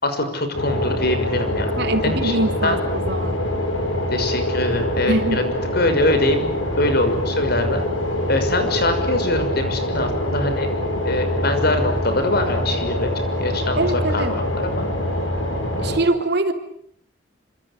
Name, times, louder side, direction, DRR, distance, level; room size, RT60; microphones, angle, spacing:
voice 1, 0.0-1.8 2.0-2.4 2.6-2.8 4.1-5.4 5.7-6.5 6.8-7.8 8.3-10.7 11.0-13.1 13.4-13.9 14.1-14.9 15.7-15.8, left 1 dB, 55° left, 8 dB, 6.2 m, -23 dB
sound 1, 0.5-16.0, left 1 dB, 90° left, 7.9 m, -24 dB
voice 2, 1.8-3.4 5.1-5.5 13.8-14.3 15.8-16.5, right 2 dB, 60° right, 6 dB, 3.5 m, -23 dB
27.0 x 26.5 x 8.4 m, 0.66 s
head